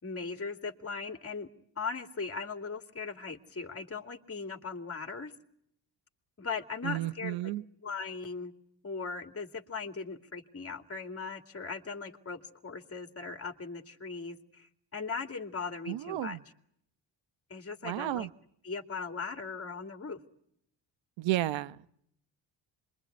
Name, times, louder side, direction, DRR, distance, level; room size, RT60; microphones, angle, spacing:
voice 1, 0.0-1.5 1.8-5.3 6.4-7.5 7.8-8.5 8.8-16.4 17.5-18.3 18.6-20.2, left 4 dB, 30° left, 2.5 m, -39 dB
voice 2, 6.8-7.6 15.9-16.4 17.8-18.3 21.2-22.0, right 15 dB, 90° right, 1.1 m, -33 dB
27.5 x 23.0 x 9.4 m
cardioid pair, 80°, 44 cm